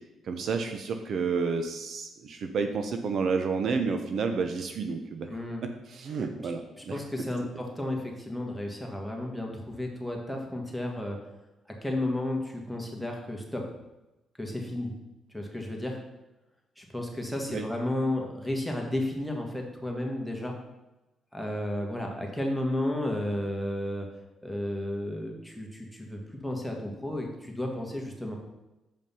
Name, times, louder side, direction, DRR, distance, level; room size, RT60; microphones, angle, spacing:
voice 1, 0.2-5.3 5.9-7.3 17.5-17.6, right 5 dB, 60° right, 6 dB, 0.8 m, -30 dB
voice 2, 5.3-5.6 6.4-6.5 6.8-11.2 11.8-13.6 14.4-14.9 15.3-16.0 16.8-20.5 21.3-24.1 24.4-28.4, left 1 dB, ahead, 0 dB, 1.8 m, -33 dB
7.2 x 5.3 x 5.6 m, 1.0 s
cardioid pair, 90°, 0 cm